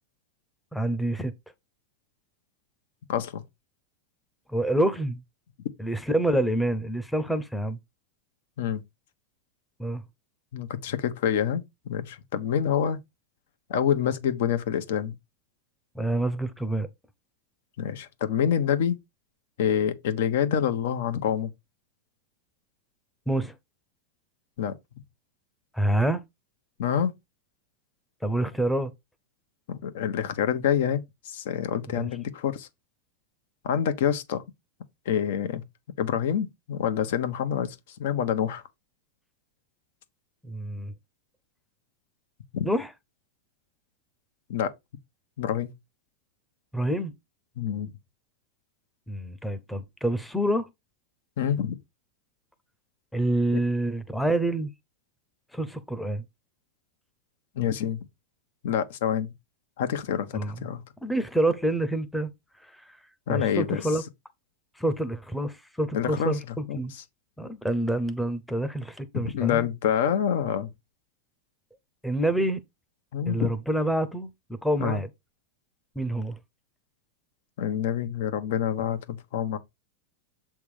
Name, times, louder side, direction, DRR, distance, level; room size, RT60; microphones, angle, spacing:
voice 1, 0.7-1.3 4.5-5.2 5.8-7.8 9.8-10.0 15.9-16.9 23.3-23.5 25.7-26.2 28.2-28.9 31.9-32.1 40.4-40.9 42.6-42.9 46.7-47.1 49.1-50.7 53.1-54.7 55.5-56.2 60.3-60.6 61.0-62.3 63.3-64.0 64.8-66.9 67.4-69.7 72.0-72.6 73.3-74.3 74.6-75.1 76.0-76.4, right 1 dB, 5° left, 0.8 m, -27 dB
voice 2, 3.1-3.4 8.6-8.8 10.5-13.0 13.7-15.1 17.8-19.0 19.6-21.5 24.6-24.7 26.8-27.1 29.7-32.7 33.6-34.4 35.0-35.6 36.0-38.6 42.5-42.7 44.5-44.7 45.4-45.7 47.6-47.9 51.4-51.8 57.5-58.0 58.6-59.3 59.8-60.3 60.6-60.8 63.3-63.9 65.9-66.4 66.7-67.0 69.2-70.7 73.1-73.5 74.8-75.0 77.6-79.6, left 9 dB, 70° left, 1.3 m, -27 dB
7.5 x 3.6 x 4.9 m
supercardioid pair, 150°, 0 cm